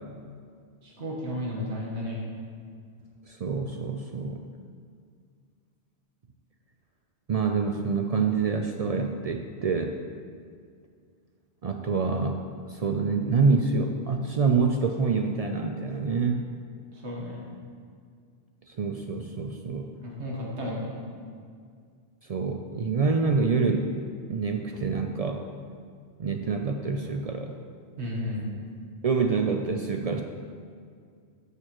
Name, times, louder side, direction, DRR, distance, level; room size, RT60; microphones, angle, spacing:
voice 1, 0.8-2.2 16.9-17.4 20.0-21.0 28.0-28.5, left 1 dB, 80° right, -3 dB, 1.7 m, -33 dB
voice 2, 3.3-4.4 7.3-10.0 11.6-16.4 18.7-19.9 22.3-25.4 26.2-27.6 29.0-30.2, right 4 dB, 55° right, 4 dB, 0.4 m, -26 dB
13.5 x 6.7 x 3.0 m, 2.1 s
omnidirectional pair, 1.1 m